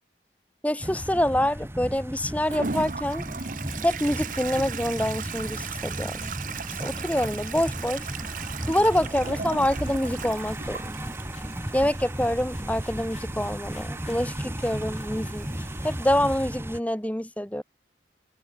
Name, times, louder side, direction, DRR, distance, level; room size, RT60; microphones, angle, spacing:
voice 1, 0.6-3.3 3.8-6.3 6.8-8.1 8.7-11.0 11.7-15.5 15.8-17.6, left 1 dB, 10° left, 1.4 m, -26 dB
sound 1, 0.8-16.8, equal, 15° right, 1.8 m, -35 dB
sound 2, 2.3-16.5, left 7 dB, 40° left, 7.2 m, -55 dB
Toilet flush, 2.5-16.1, right 5 dB, 45° right, 0.9 m, -38 dB
head